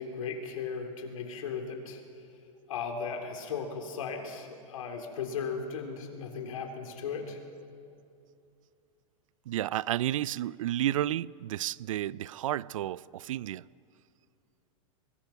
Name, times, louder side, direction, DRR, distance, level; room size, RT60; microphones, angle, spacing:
voice 1, 0.0-2.0 2.7-7.4, left 5 dB, 85° left, 3.6 m, -36 dB
voice 2, 9.5-13.7, right 13 dB, 80° right, 0.5 m, -31 dB
24.0 x 21.0 x 5.9 m
supercardioid pair, 160°, 17 cm